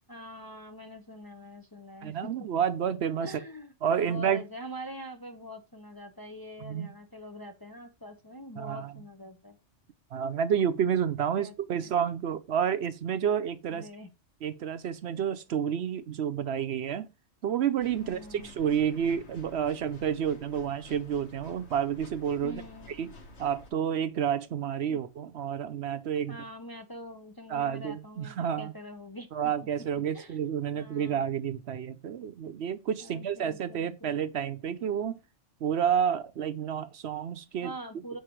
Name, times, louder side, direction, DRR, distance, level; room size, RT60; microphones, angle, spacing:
voice 1, 0.1-2.3 3.2-3.7 4.0-9.6 11.4-11.9 13.7-14.1 18.0-18.5 22.4-22.9 24.9-25.0 26.3-29.3 30.1-30.4 30.7-31.2 33.0-34.2 37.6-38.2, equal, 25° left, 0.6 m, -44 dB
voice 2, 2.0-3.3 3.8-4.4 6.6-6.9 8.6-8.9 10.1-13.9 14.4-17.1 17.4-22.6 22.9-23.1 23.4-26.4 27.5-28.7 29.3-35.2 35.6-37.7, right 8 dB, 65° right, 0.9 m, -30 dB
sound 1, 17.8-23.7, left 2 dB, 65° left, 1.3 m, -51 dB
6.7 x 4.8 x 4.4 m
omnidirectional pair, 1.2 m